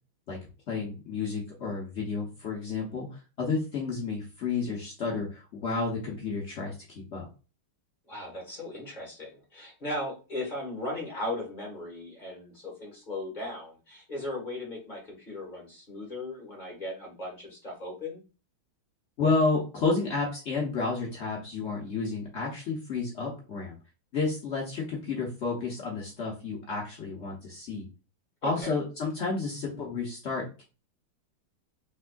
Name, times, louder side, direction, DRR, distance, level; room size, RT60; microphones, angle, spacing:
voice 1, 0.7-7.3 19.2-23.8 24.1-27.9 28.4-30.6, left 4 dB, 85° left, -3 dB, 0.6 m, -31 dB
voice 2, 8.1-18.2 28.4-28.8, left 1 dB, 30° left, -2 dB, 0.9 m, -37 dB
3.4 x 3.3 x 2.2 m, 0.32 s
omnidirectional pair, 2.3 m